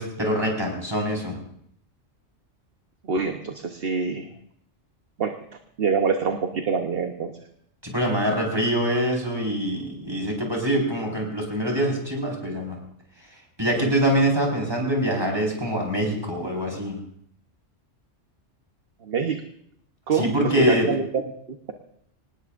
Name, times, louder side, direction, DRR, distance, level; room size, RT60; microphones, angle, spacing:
voice 1, 0.0-1.4 7.8-12.8 13.6-17.0 20.1-20.9, equal, 20° right, -1 dB, 4.9 m, -24 dB
voice 2, 3.0-4.3 5.2-5.3 5.8-7.3 19.0-19.4 20.1-21.2, right 5 dB, 55° right, 5 dB, 1.2 m, -25 dB
24.5 x 19.0 x 2.6 m, 0.70 s
omnidirectional pair, 1.2 m